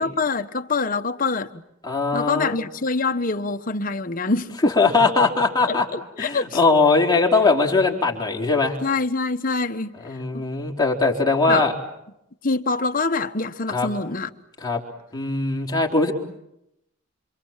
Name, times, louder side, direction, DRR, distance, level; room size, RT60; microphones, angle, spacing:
voice 1, 0.0-1.6 2.1-4.6 5.6-6.6 8.8-10.4 11.5-11.7 12.4-14.3, left 3 dB, 40° left, 1.2 m, -25 dB
voice 2, 1.8-2.5 4.6-5.8 6.2-8.8 10.0-11.7 13.7-13.9 14.6-14.8 15.1-16.1, left 3 dB, 20° left, 3.9 m, -20 dB
28.0 x 27.0 x 7.4 m
head